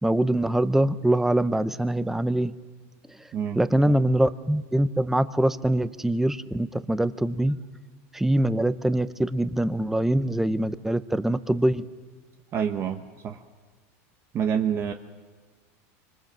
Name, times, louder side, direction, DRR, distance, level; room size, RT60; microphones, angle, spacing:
voice 1, 0.0-2.5 3.6-7.6 8.1-11.8, right 1 dB, 5° right, 14 dB, 0.7 m, -23 dB
voice 2, 3.3-3.9 12.5-13.4 14.3-14.9, right 8 dB, 35° right, 5 dB, 1.1 m, -28 dB
26.0 x 25.5 x 7.5 m, 1.4 s
supercardioid pair, 145°, 8 cm